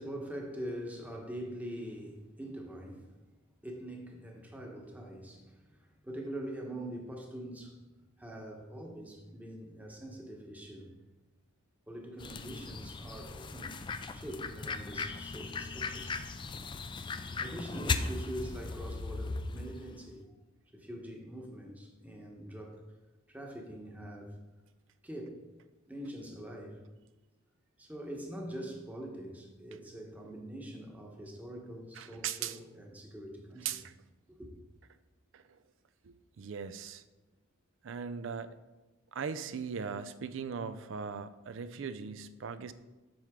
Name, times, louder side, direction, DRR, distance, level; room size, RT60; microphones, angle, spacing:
voice 1, 0.0-3.2 3.6-7.8 8.2-10.9 11.9-13.8 14.1-16.2 17.4-20.2 20.7-22.8 23.3-24.3 25.0-25.4 25.9-26.8 27.8-33.8 34.4-34.5, right 1 dB, 10° right, 1 dB, 1.0 m, -43 dB
sound 1, 12.2-19.9, left 4 dB, 25° left, 0.3 m, -38 dB
voice 2, 32.0-32.6 33.6-33.8 35.3-35.4 36.0-37.0 37.8-38.6 39.1-42.7, right 6 dB, 70° right, 13 dB, 0.4 m, -39 dB
7.8 x 5.8 x 3.6 m, 1.1 s
head